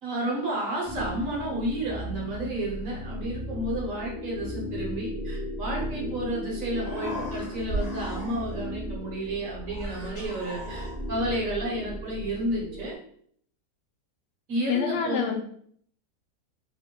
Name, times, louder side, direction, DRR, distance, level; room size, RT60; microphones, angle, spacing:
voice 1, 0.0-12.9 14.5-15.4, right 1 dB, 60° right, -2 dB, 1.1 m, -31 dB
sound 1, 0.9-12.9, left 1 dB, 25° right, 0.7 m, -36 dB
Human voice, 6.6-8.7 9.6-11.3, right 1 dB, 30° left, 1.1 m, -37 dB
voice 2, 14.7-15.4, left 8 dB, 85° left, 4 dB, 1.2 m, -26 dB
2.9 x 2.1 x 3.6 m, 0.62 s
omnidirectional pair, 1.8 m